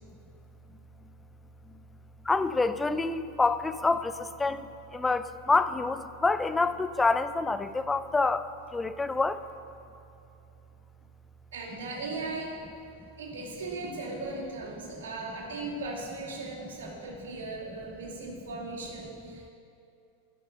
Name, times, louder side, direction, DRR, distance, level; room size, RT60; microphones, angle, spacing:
voice 1, 2.2-9.4, left 3 dB, 10° left, 13 dB, 0.5 m, -27 dB
voice 2, 11.5-12.6 13.2-19.5, right 3 dB, 60° right, -1 dB, 2.7 m, -38 dB
12.0 x 12.0 x 6.8 m, 2.7 s
figure-of-eight pair, 90°, 0 cm